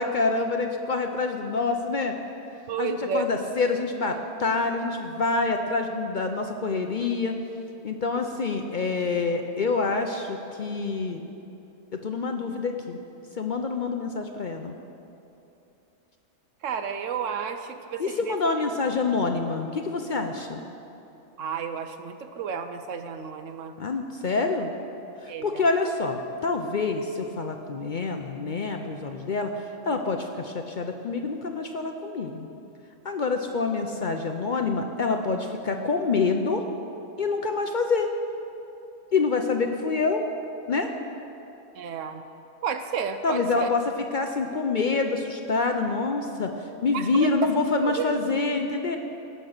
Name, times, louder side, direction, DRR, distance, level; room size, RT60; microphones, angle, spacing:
voice 1, 0.0-2.1 2.8-7.4 7.8-11.2 11.9-13.0 13.4-14.7 18.0-20.6 23.8-24.7 25.2-32.5 33.0-36.6 37.2-38.1 39.1-40.3 40.7-40.9 43.2-49.0, left 4 dB, 55° left, 4 dB, 0.5 m, -26 dB
voice 2, 2.7-3.3 16.6-18.3 21.4-23.7 25.3-25.6 41.8-42.2 42.6-43.7 46.9-47.3 47.8-48.2, right 6 dB, 65° right, 8 dB, 1.0 m, -32 dB
17.5 x 5.9 x 6.6 m, 2.9 s
omnidirectional pair, 1.6 m